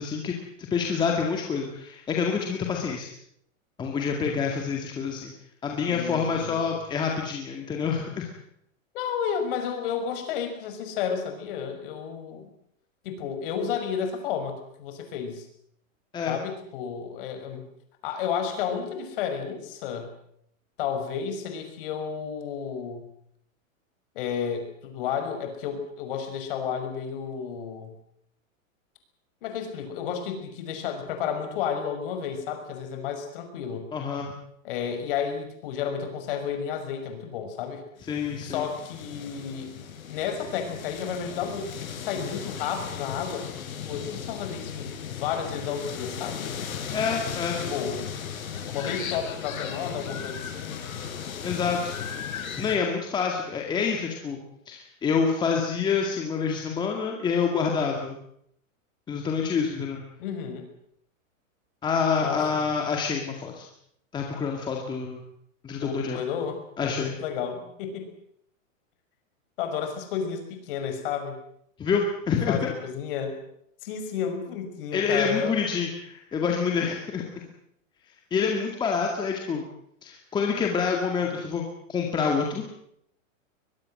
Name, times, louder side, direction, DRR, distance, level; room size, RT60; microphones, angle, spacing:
voice 1, 0.0-3.1 3.8-5.3 5.6-8.3 16.1-16.3 33.9-34.3 38.0-38.6 46.9-47.6 51.4-52.0 52.6-54.4 54.7-58.2 59.1-60.0 61.8-63.7 64.1-65.2 65.6-66.2 66.8-67.1 71.8-72.7 74.9-77.4 78.3-79.6 80.0-82.8, left 6 dB, 10° left, 1 dB, 2.1 m, -27 dB
voice 2, 5.8-6.7 8.9-12.5 13.0-15.5 16.3-17.6 18.0-20.1 20.8-23.1 24.1-27.9 29.4-33.9 34.6-37.8 38.4-39.7 40.1-43.5 43.8-46.6 47.6-48.0 48.7-50.7 60.2-60.7 62.2-62.7 65.8-68.1 69.6-71.4 72.5-73.4 73.8-75.5, left 7 dB, 40° left, 6 dB, 5.9 m, -32 dB
sound 1, 38.0-52.8, left 7 dB, 90° left, 6.0 m, -36 dB
23.5 x 21.5 x 7.7 m, 0.71 s
supercardioid pair, 170°, 41 cm